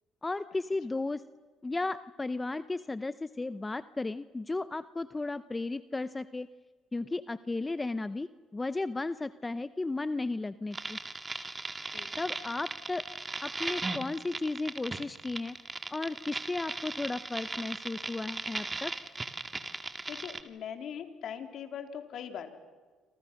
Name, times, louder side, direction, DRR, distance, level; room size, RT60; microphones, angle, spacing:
voice 1, 0.2-1.2 1.6-6.5 6.9-8.3 8.5-11.0 12.2-13.0 13.4-15.6 15.9-18.9, left 2 dB, 20° left, 14 dB, 0.7 m, -34 dB
sound 1, 10.7-20.4, right 3 dB, 25° right, 2.0 m, -38 dB
voice 2, 11.9-12.4 20.1-22.6, left 8 dB, 65° left, 6 dB, 3.0 m, -41 dB
28.0 x 26.5 x 6.5 m, 1.4 s
cardioid pair, 85°, 0 cm